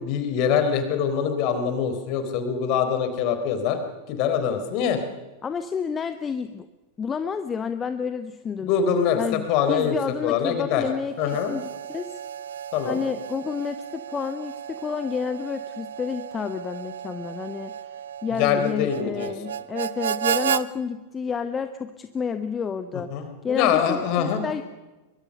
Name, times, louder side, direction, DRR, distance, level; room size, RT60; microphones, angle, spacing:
voice 1, 0.0-3.8 4.1-5.0 8.6-10.0 10.2-10.8 11.2-11.5 12.7-13.0 18.4-19.3 23.1-24.4, left 7 dB, 45° left, 8 dB, 3.9 m, -24 dB
voice 2, 5.4-6.7 7.0-8.7 9.2-12.2 12.8-17.8 18.2-23.1 23.4-24.6, left 6 dB, 20° left, 10 dB, 1.0 m, -30 dB
Harmonica, 11.1-20.7, right 9 dB, 65° right, 0.7 m, -33 dB
23.0 x 22.5 x 6.6 m, 1.1 s
figure-of-eight pair, 90°, 0 cm